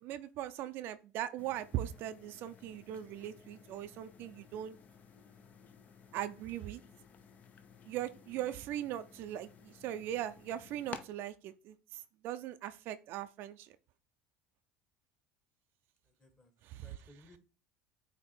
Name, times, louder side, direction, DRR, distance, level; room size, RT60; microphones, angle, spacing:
voice 1, 0.0-4.8 6.1-6.8 7.9-13.8 16.6-16.9, right 12 dB, 60° right, 0.5 m, -40 dB
sound 1, 1.4-11.0, left 6 dB, 40° left, 0.8 m, -55 dB
voice 2, 16.0-17.4, left 1 dB, 20° left, 1.6 m, -61 dB
8.2 x 2.9 x 4.3 m
supercardioid pair, 100°, 4 cm